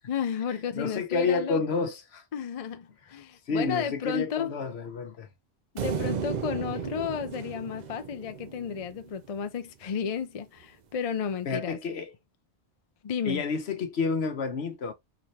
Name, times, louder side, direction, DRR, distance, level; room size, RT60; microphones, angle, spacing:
voice 1, 0.1-1.9 2.3-4.5 5.7-11.8 13.0-13.4, left 7 dB, 45° left, 0.5 m, -33 dB
voice 2, 0.8-2.2 3.5-5.3 11.5-12.1 13.2-14.9, left 4 dB, 70° left, 1.1 m, -29 dB
sound 1, 5.8-9.1, right 6 dB, 55° right, 0.5 m, -34 dB
3.9 x 3.2 x 2.7 m
omnidirectional pair, 1.1 m